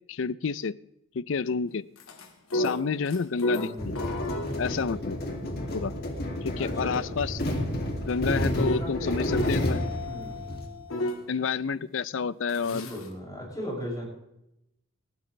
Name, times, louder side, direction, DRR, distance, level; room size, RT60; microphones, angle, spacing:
voice 1, 0.1-0.8 1.1-1.9 2.5-4.0 4.6-5.2 5.7-5.9 6.4-7.4 8.1-9.8 11.3-12.9, left 5 dB, 65° left, 19 dB, 0.5 m, -29 dB
sound 1, 2.0-11.3 12.5-13.1, left 1 dB, 90° left, 2.2 m, -35 dB
voice 2, 3.6-3.9 6.6-7.2 8.6-9.5 10.0-10.6 12.6-14.0, left 1 dB, 20° left, -3 dB, 6.6 m, -37 dB
sound 2, 3.8-10.6, left 1 dB, 50° left, 2.6 m, -30 dB
19.5 x 15.0 x 3.3 m, 0.83 s
head